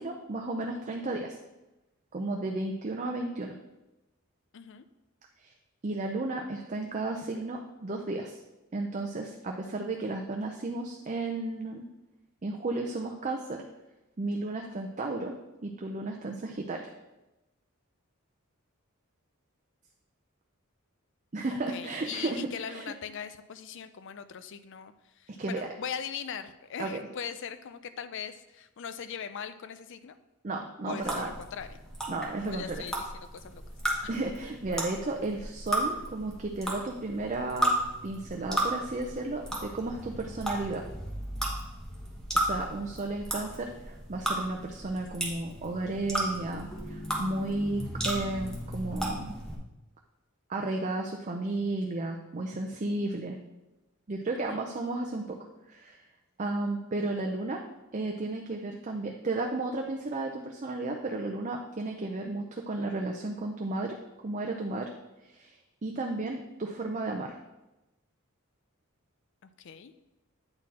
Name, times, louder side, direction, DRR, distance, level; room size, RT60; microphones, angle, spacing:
voice 1, 0.0-1.4 2.1-3.6 5.4-5.5 5.8-8.4 8.7-11.8 12.4-13.6 14.2-15.3 15.6-16.9 21.3-22.4 22.7-22.9 25.4-25.7 26.8-27.0 30.4-31.3 32.1-32.8 34.1-37.7 38.0-40.8 42.3-49.3 50.5-53.4 54.1-55.4 55.7-56.0 56.4-57.6 57.9-64.0 64.2-64.9 65.3-67.4, right 2 dB, 35° right, 2 dB, 0.5 m, -33 dB
voice 2, 4.5-4.9 21.7-30.2 30.9-31.8 32.5-33.6 34.0-34.2 54.5-54.7 69.4-69.9, left 7 dB, 60° left, 12 dB, 0.4 m, -40 dB
sound 1, 31.0-49.5, right 1 dB, 5° left, 1.2 m, -34 dB
8.8 x 4.3 x 4.2 m, 0.99 s
head